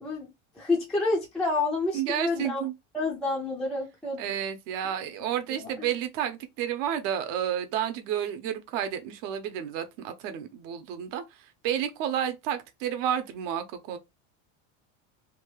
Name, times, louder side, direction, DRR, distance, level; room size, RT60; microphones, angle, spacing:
voice 1, 0.0-2.6 2.9-4.2 5.6-5.9, left 3 dB, ahead, 0.3 m, -29 dB
voice 2, 1.9-2.7 4.2-14.0, right 9 dB, 65° right, 0.8 m, -31 dB
2.8 x 2.3 x 3.1 m
cardioid pair, 155°, 39 cm